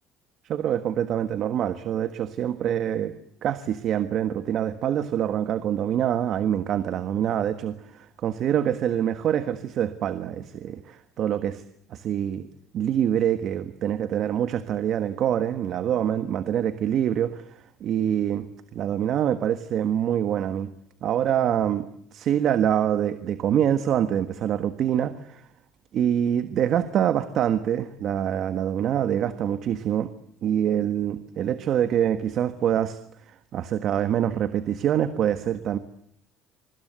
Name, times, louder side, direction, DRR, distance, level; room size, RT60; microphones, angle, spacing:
voice 1, 0.5-3.1 3.4-11.6 11.9-12.5 12.7-18.4 18.7-20.7 21.0-25.4 25.9-30.1 30.4-33.0 33.3-35.8, right 10 dB, 45° right, 10 dB, 1.5 m, -25 dB
26.5 x 24.5 x 8.2 m, 0.69 s
cardioid pair, 155°, 0 cm